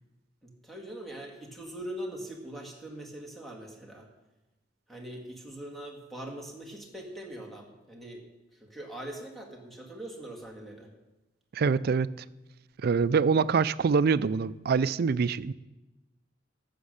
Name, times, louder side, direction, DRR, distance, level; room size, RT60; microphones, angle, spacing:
voice 1, 0.4-4.1 4.9-8.3 8.6-10.9, right 1 dB, ahead, 0 dB, 1.9 m, -42 dB
voice 2, 11.5-12.1 12.8-15.5, right 5 dB, 55° right, 16 dB, 0.4 m, -25 dB
12.5 x 7.2 x 6.5 m, 1.0 s
head